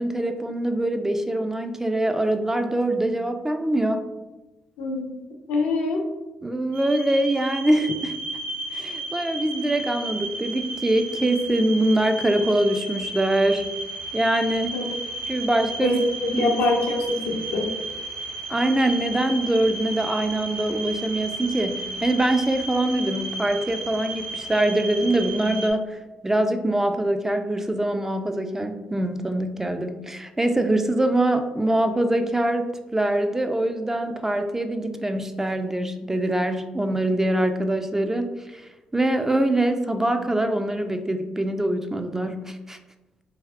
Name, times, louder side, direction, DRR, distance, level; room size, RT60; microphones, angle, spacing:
voice 1, 0.0-4.0 6.4-8.2 8.7-13.7 14.1-14.7 15.3-16.0 16.3-16.4 18.5-38.6 38.9-42.8, right 1 dB, 15° right, 7 dB, 0.3 m, -24 dB
voice 2, 4.8-5.2 5.5-6.0 14.7-14.8 15.8-17.7, left 2 dB, 80° left, 0 dB, 0.5 m, -24 dB
sound 1, 6.7-25.7, right 2 dB, 70° right, 0.5 m, -33 dB
3.4 x 2.6 x 2.4 m, 1.1 s
supercardioid pair, 50°, 3 cm